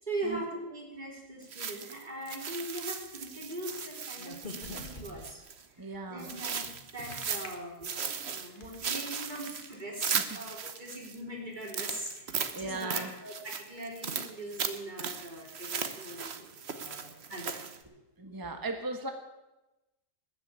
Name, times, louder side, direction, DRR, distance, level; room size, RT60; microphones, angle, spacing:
voice 1, 0.0-5.4 5.8-7.9 8.3-10.1 10.3-17.7, right 1 dB, 35° right, -2 dB, 3.8 m, -41 dB
sound 1, 1.5-5.6 6.2-7.6 7.8-11.2 11.6-17.8, right 6 dB, 55° right, 1.2 m, -37 dB
sound 2, 4.2-5.4 7.1-7.5 8.1-8.7, left 3 dB, 40° left, 1.8 m, -44 dB
voice 2, 5.8-6.3 8.5-8.6 10.1-10.2 12.5-13.1 16.9-17.0 18.2-19.1, right 2 dB, 15° right, 5 dB, 1.3 m, -37 dB
20.0 x 7.0 x 8.6 m, 1.0 s
omnidirectional pair, 1.4 m